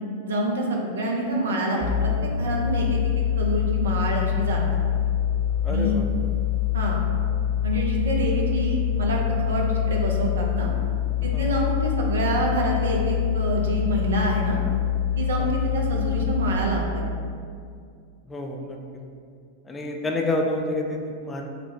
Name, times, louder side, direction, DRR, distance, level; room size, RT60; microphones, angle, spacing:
voice 1, 0.2-4.6 5.7-6.0 6.7-7.0 7.6-10.7 11.2-14.6 15.2-17.0, right 1 dB, 65° right, -1 dB, 0.6 m, -27 dB
sound 1, 1.8-16.5, left 10 dB, 50° left, 0.8 m, -25 dB
voice 2, 5.6-6.1 11.3-11.6 15.4-15.5 18.3-19.0 19.6-21.5, left 2 dB, 15° left, 1 dB, 0.3 m, -29 dB
5.0 x 2.2 x 2.8 m, 2.3 s
figure-of-eight pair, 90°, 0 cm